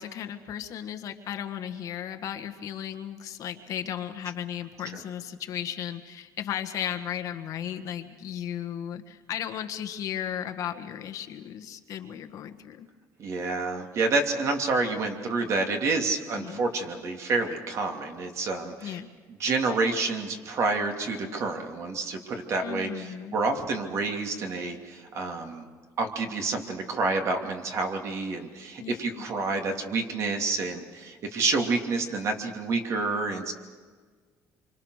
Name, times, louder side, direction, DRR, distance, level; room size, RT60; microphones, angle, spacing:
voice 1, 0.0-12.9 16.3-16.6 18.8-19.1 22.6-23.3 28.8-29.2, left 10 dB, 55° left, 7 dB, 1.6 m, -35 dB
voice 2, 13.2-19.0 19.3-25.6 26.0-33.5, right 3 dB, 45° right, 4 dB, 2.9 m, -28 dB
26.5 x 25.0 x 6.5 m, 1.5 s
cardioid pair, 160°, 7 cm